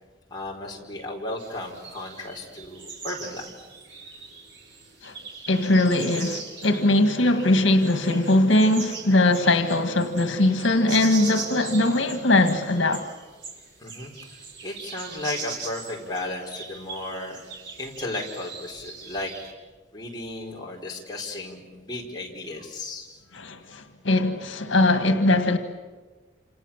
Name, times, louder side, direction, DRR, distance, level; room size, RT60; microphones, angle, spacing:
voice 1, 0.3-3.5 13.8-14.1 14.6-17.4 17.8-19.3 19.9-23.2, left 2 dB, 20° left, 4.6 m, -34 dB
sound 1, 1.4-19.5, right 4 dB, 70° right, 5.2 m, -40 dB
voice 2, 5.5-13.1 23.3-25.6, left 2 dB, 85° left, 1.8 m, -21 dB
28.5 x 27.5 x 7.3 m
head